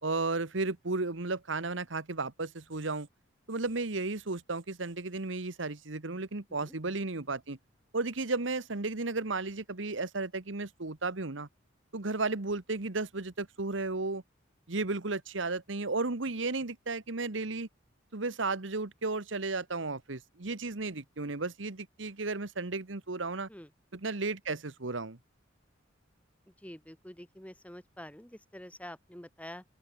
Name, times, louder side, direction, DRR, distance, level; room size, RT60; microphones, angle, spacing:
voice 1, 0.0-3.1 3.5-7.6 7.9-11.5 11.9-14.2 14.7-17.7 18.1-23.5 23.9-25.2, right 3 dB, 70° right, 1.4 m, -34 dB
voice 2, 26.5-29.6, left 1 dB, 5° left, 3.7 m, -47 dB
open air
head